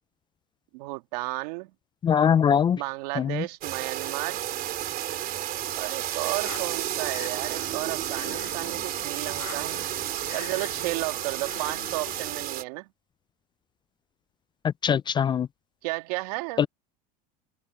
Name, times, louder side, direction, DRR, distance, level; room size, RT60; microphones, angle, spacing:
voice 1, 0.7-1.7 2.7-4.4 5.7-9.8 10.3-12.9 15.8-16.7, right 23 dB, 80° right, 2.3 m, -33 dB
voice 2, 2.0-2.8 3.2-3.3 14.8-15.5 16.6-16.7, left 8 dB, 25° left, 0.3 m, -21 dB
sound 1, 3.6-12.6, right 12 dB, 45° right, 3.5 m, -32 dB
sound 2, 6.4-12.5, left 19 dB, 85° left, 5.0 m, -44 dB
open air
supercardioid pair, 110°, 20 cm